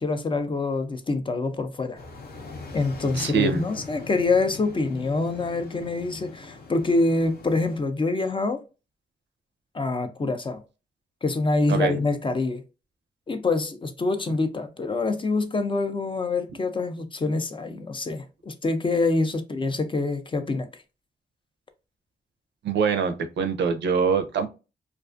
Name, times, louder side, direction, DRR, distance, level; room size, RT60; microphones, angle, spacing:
voice 1, 0.0-2.0 2.7-8.6 9.7-10.6 11.2-12.6 13.3-20.7, left 3 dB, 30° left, 0.4 m, -25 dB
sound 1, 2.0-7.8, left 4 dB, 60° left, 0.7 m, -41 dB
voice 2, 3.1-3.6 11.7-12.0 22.6-24.5, right 6 dB, 90° right, 0.4 m, -24 dB
2.4 x 2.3 x 2.4 m
cardioid pair, 85°, 18 cm